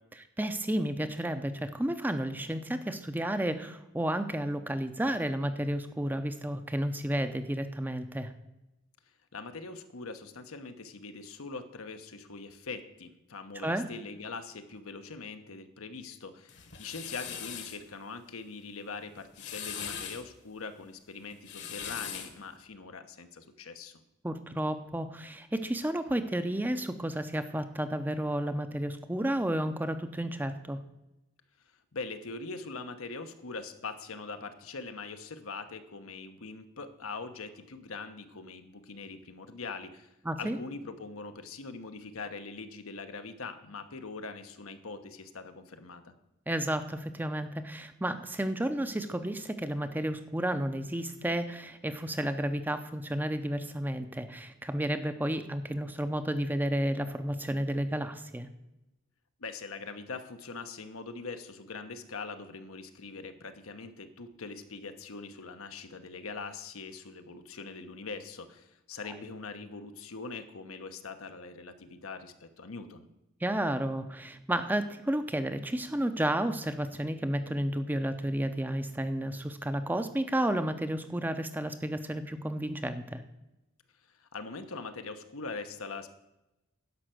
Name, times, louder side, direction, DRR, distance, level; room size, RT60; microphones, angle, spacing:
voice 1, 0.4-8.3 13.6-13.9 24.2-30.8 40.3-40.6 46.5-58.5 73.4-83.2, right 1 dB, 10° right, 9 dB, 0.6 m, -32 dB
voice 2, 9.3-24.0 31.9-40.1 40.4-46.1 59.4-73.1 84.1-86.1, left 4 dB, 80° left, 8 dB, 1.0 m, -42 dB
sound 1, 16.5-17.8 19.2-20.2 21.3-22.4, left 8 dB, 55° left, 1.3 m, -40 dB
11.0 x 5.6 x 7.6 m, 0.95 s
head